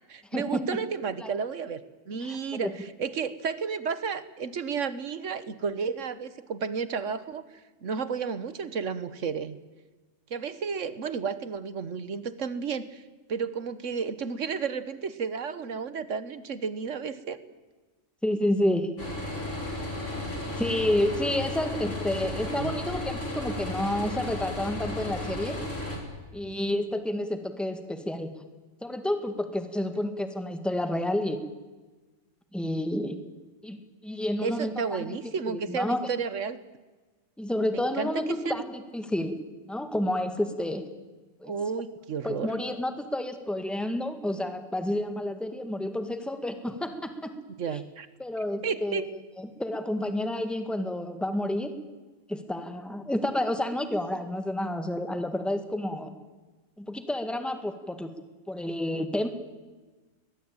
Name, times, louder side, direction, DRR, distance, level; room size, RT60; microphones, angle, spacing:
voice 1, 0.1-1.8 2.1-7.4 7.8-9.6 10.3-13.0 13.3-17.4 22.2-22.8 34.4-36.6 37.7-38.6 41.4-42.5 47.6-48.1 48.6-49.0, right 6 dB, 70° right, 14 dB, 1.5 m, -32 dB
voice 2, 2.2-2.7 18.2-18.9 20.6-25.6 26.3-28.3 28.8-31.4 32.5-33.2 33.6-35.2 35.5-36.1 37.4-39.3 39.7-40.8 41.4-41.5 42.2-47.3 48.2-49.1 49.4-51.7 52.3-56.2 56.8-58.1 58.5-59.3, left 1 dB, ahead, 7 dB, 1.9 m, -30 dB
sound 1, 19.0-26.0, left 2 dB, 70° left, 5.1 m, -34 dB
22.0 x 21.0 x 8.9 m, 1.3 s
omnidirectional pair, 1.3 m